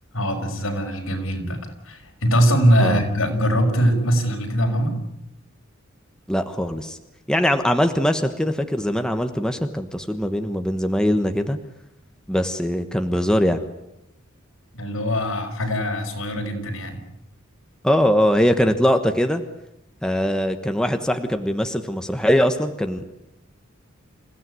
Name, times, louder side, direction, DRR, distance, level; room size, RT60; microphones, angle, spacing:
voice 1, 0.1-5.0 14.7-17.0, equal, 75° left, 2 dB, 5.7 m, -22 dB
voice 2, 6.3-7.0 7.3-11.6 12.3-13.6 17.8-19.4 20.0-23.0, equal, 5° left, 6 dB, 1.2 m, -21 dB
27.5 x 16.5 x 9.6 m, 0.87 s
head